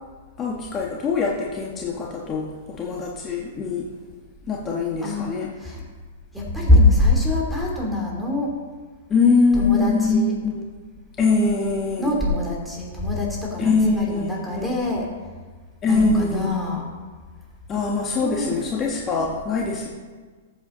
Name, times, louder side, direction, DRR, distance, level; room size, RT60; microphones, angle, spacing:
voice 1, 0.4-3.9 4.5-5.5 9.1-10.6 11.2-12.1 13.6-14.8 15.8-16.5 17.7-19.9, left 4 dB, 25° left, -2 dB, 1.4 m, -23 dB
voice 2, 5.0-5.8 6.3-8.5 9.5-10.3 12.0-15.1 15.8-16.8 18.2-18.6, left 2 dB, ahead, -2 dB, 3.0 m, -23 dB
14.0 x 7.9 x 3.9 m, 1.4 s
hypercardioid pair, 130°, 0 cm